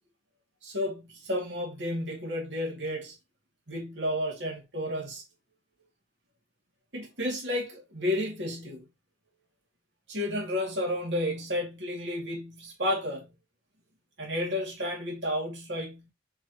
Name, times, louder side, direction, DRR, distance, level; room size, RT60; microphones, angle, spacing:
voice 1, 0.6-3.1 3.7-5.2 6.9-8.9 10.1-13.3 14.2-16.1, left 1 dB, 70° right, 2.4 m, -32 dB
6.8 x 5.0 x 3.0 m
head